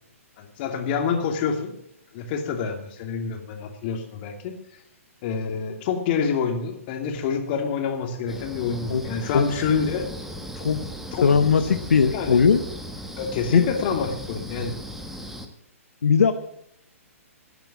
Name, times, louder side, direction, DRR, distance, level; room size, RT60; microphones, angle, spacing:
voice 1, 0.4-1.7 2.1-4.6 5.2-10.1 11.1-11.3 11.6-11.7 12.1-12.4 13.2-14.7, left 6 dB, 40° left, 5 dB, 2.7 m, -27 dB
sound 1, 8.3-15.5, equal, 5° right, 1.4 m, -37 dB
voice 2, 11.2-12.6 13.5-13.6 16.0-16.3, left 6 dB, 75° left, 9 dB, 0.9 m, -19 dB
16.0 x 9.1 x 7.2 m, 0.73 s
hypercardioid pair, 130°, 8 cm